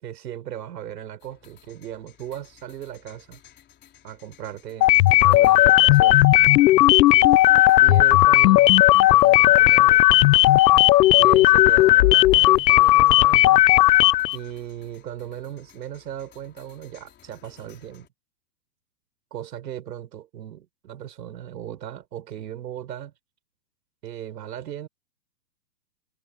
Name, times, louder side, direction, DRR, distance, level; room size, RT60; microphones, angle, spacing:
voice 1, 0.0-3.4 4.0-4.9 5.2-6.3 7.8-8.7 9.1-10.1 11.2-13.6 14.3-18.1 19.3-23.1 24.0-24.9, right 11 dB, 75° right, 5.1 m, -37 dB
sound 1, 1.2-18.1, left 11 dB, 20° left, 4.5 m, -56 dB
sound 2, 4.8-14.4, left 16 dB, 80° left, 0.6 m, -15 dB
hypercardioid pair, 145°, 50 cm